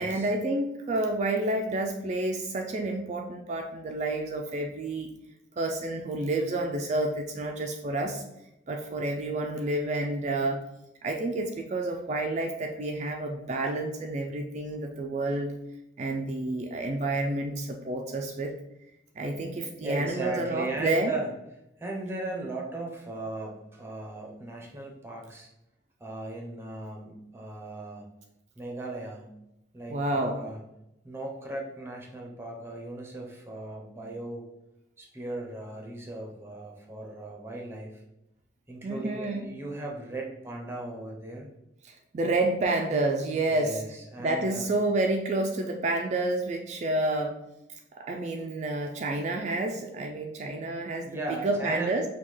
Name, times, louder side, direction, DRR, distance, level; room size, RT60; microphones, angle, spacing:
voice 1, 0.0-5.1 5.6-8.2 8.7-10.6 11.0-15.5 16.0-18.5 19.2-21.1 29.9-30.4 38.8-39.5 41.8-43.8 44.2-47.4 47.9-52.0, right 2 dB, 40° right, 2 dB, 0.3 m, -29 dB
voice 2, 19.8-21.3 21.8-25.5 26.0-28.1 28.6-29.3 29.7-30.6 31.0-34.5 35.0-38.0 38.7-41.5 43.5-44.7 51.0-51.9, right 2 dB, 15° right, 0 dB, 0.7 m, -37 dB
5.4 x 2.3 x 3.2 m, 0.87 s
head